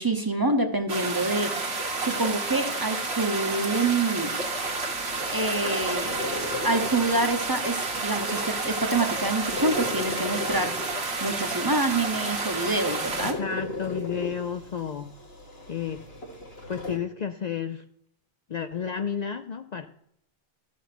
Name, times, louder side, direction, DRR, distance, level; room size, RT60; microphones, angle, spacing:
voice 1, 0.0-4.4 5.3-13.4, right 2 dB, 25° right, 7 dB, 0.8 m, -27 dB
sound 1, 0.9-13.3, right 3 dB, 80° right, 1.7 m, -30 dB
sound 2, 4.4-17.0, left 2 dB, 80° left, 2.2 m, -38 dB
voice 2, 13.2-15.1 15.7-16.0 16.7-17.8 18.5-19.9, left 7 dB, 55° left, 8 dB, 0.5 m, -31 dB
13.5 x 5.6 x 5.9 m, 0.75 s
omnidirectional pair, 1.0 m